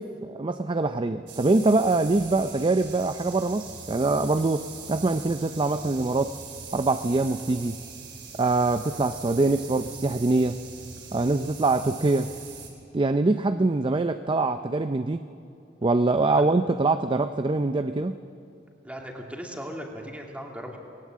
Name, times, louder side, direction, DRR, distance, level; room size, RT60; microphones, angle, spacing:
voice 1, 0.0-6.3 6.7-7.8 8.4-10.6 11.1-12.3 12.9-15.2 15.8-18.2, right 3 dB, 25° right, 10 dB, 0.5 m, -24 dB
sound 1, 1.3-12.7, right 5 dB, 90° right, 3.8 m, -42 dB
voice 2, 18.8-20.8, equal, 10° right, 1 dB, 2.3 m, -38 dB
19.5 x 18.5 x 7.6 m, 2.6 s
head